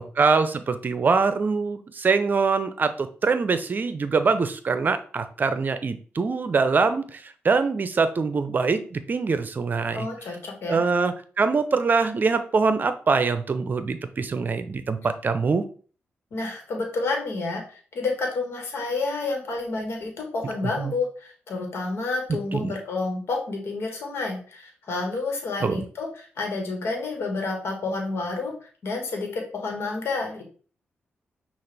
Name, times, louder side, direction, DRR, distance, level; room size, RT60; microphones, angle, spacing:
voice 1, 0.0-10.1 10.7-15.6 20.8-20.9 22.3-22.7 25.6-25.8, right 4 dB, 45° right, 10 dB, 0.6 m, -24 dB
voice 2, 9.9-10.8 16.3-30.4, left 3 dB, 70° left, 2 dB, 1.4 m, -30 dB
5.7 x 2.5 x 3.3 m, 0.41 s
cardioid pair, 70°, 4 cm